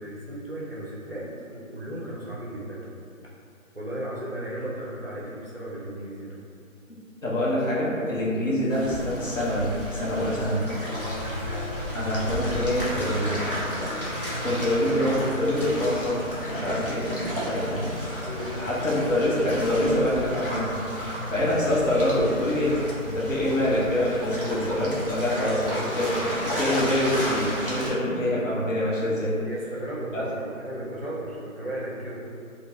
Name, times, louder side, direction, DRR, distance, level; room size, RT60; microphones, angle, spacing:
voice 1, 0.0-2.9 3.7-6.4 8.4-8.6 11.0-11.3 18.2-18.6 25.5-25.7 29.4-32.2, right 1 dB, 45° right, -7 dB, 0.4 m, -35 dB
voice 2, 7.2-10.6 11.9-13.6 14.4-18.3 18.6-20.7 21.3-22.8 23.0-29.4 30.1-30.3, left 1 dB, 65° left, -6 dB, 0.8 m, -25 dB
sound 1, 7.9-8.8 10.8-11.8 13.8-14.8, left 1 dB, 25° left, 0.9 m, -42 dB
sound 2, 8.7-27.9, equal, 45° left, 0.4 m, -32 dB
2.3 x 2.1 x 3.2 m, 2.5 s
hypercardioid pair, 180°, 42 cm